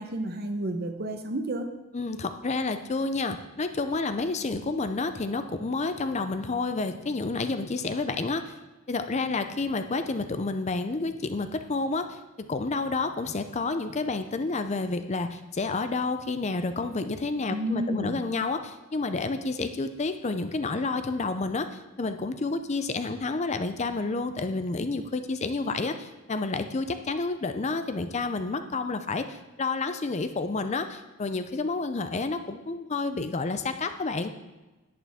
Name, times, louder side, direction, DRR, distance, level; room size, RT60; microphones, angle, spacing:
voice 1, 0.0-1.7 17.5-18.2, right 1 dB, 45° right, 7 dB, 0.8 m, -31 dB
voice 2, 1.9-8.5 8.9-12.2 12.5-34.3, left 3 dB, 30° left, 9 dB, 0.5 m, -30 dB
11.0 x 8.6 x 3.5 m, 1.1 s
head